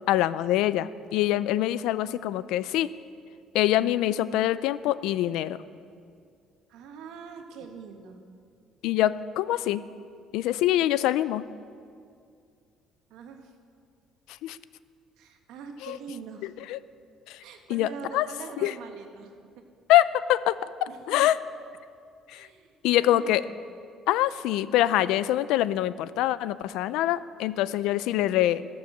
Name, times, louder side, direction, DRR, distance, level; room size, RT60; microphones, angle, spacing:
voice 1, 0.1-2.9 3.5-5.6 8.8-9.8 10.3-11.4 14.4-14.6 15.8-16.0 16.7-16.8 17.3-17.4 17.7-17.9 18.1-18.3 18.6-18.7 19.9-21.4 22.3-22.5 22.8-23.4 24.1-28.7, left 13 dB, 85° left, 16 dB, 0.4 m, -24 dB
voice 2, 6.7-8.2 13.1-13.5 15.2-16.5 17.4-19.6 20.9-21.2 22.3-23.5, right 6 dB, 80° right, 4 dB, 1.4 m, -43 dB
19.0 x 6.9 x 6.6 m, 2.3 s
cardioid pair, 150°, 0 cm